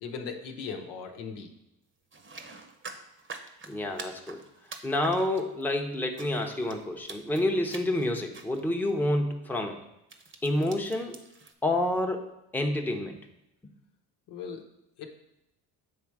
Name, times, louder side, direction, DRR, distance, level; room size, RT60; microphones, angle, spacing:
voice 1, 0.0-1.5 14.3-14.6 15.0-15.1, left 5 dB, 80° left, 3 dB, 1.0 m, -38 dB
sound 1, 2.1-5.7 6.2-6.8 7.1-7.4 7.7-8.0 8.3-8.6 8.9-9.1 10.1-11.5, right 4 dB, 30° right, 0.9 m, -45 dB
voice 2, 3.7-4.4 4.8-9.8 10.4-11.2 11.6-12.3 12.5-13.2, left 1 dB, 5° left, 2 dB, 0.8 m, -28 dB
7.5 x 3.2 x 4.7 m, 0.88 s
supercardioid pair, 75°, 40 cm